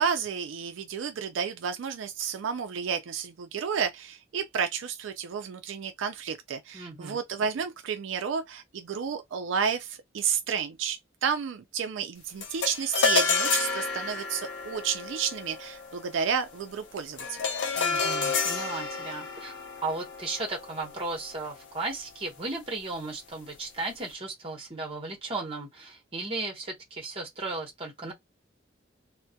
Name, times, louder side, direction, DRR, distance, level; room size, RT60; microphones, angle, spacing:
voice 1, 0.0-17.4, right 7 dB, 80° right, 0.4 m, -31 dB
voice 2, 6.7-7.2 17.8-28.1, right 3 dB, 30° right, 0.9 m, -35 dB
sound 1, 12.4-21.9, left 4 dB, 70° left, 0.6 m, -30 dB
2.2 x 2.1 x 2.7 m
head